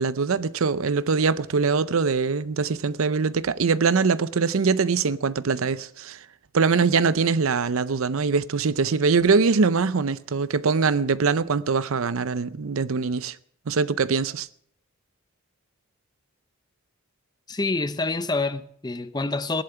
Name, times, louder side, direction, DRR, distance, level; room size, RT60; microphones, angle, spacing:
voice 1, 0.0-6.2 6.5-13.4 13.7-14.5, right 5 dB, 75° right, 0.6 m, -23 dB
voice 2, 17.5-19.6, left 3 dB, 20° left, 0.5 m, -27 dB
16.5 x 11.0 x 5.8 m
head